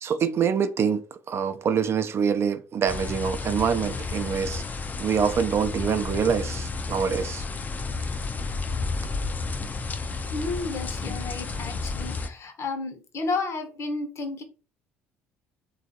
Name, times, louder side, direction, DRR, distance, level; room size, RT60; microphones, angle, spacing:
voice 1, 0.0-4.6 5.0-7.5, right 7 dB, 40° right, 0.3 m, -25 dB
sound 1, 2.9-12.3, left 4 dB, 25° left, 0.4 m, -31 dB
voice 2, 10.3-14.4, left 3 dB, 45° left, 0.8 m, -32 dB
3.1 x 2.4 x 2.6 m
hypercardioid pair, 60°, 6 cm